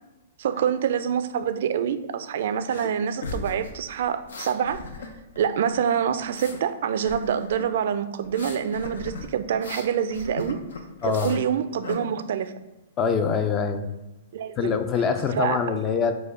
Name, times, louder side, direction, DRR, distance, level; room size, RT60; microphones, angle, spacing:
voice 1, 0.4-4.8 5.4-10.6 11.0-12.5 14.3-14.8 15.3-15.7, right 8 dB, 65° right, 12 dB, 0.3 m, -26 dB
sound 1, 2.7-2.9 3.2-5.4 5.7-6.6 7.0-7.7 8.2-11.4 11.8-12.0, left 3 dB, 85° left, 0.6 m, -37 dB
voice 2, 11.0-11.4 13.0-13.9 14.6-16.1, left 6 dB, 25° left, 9 dB, 0.4 m, -24 dB
4.8 x 2.2 x 4.8 m, 1.0 s
hypercardioid pair, 135°, 0 cm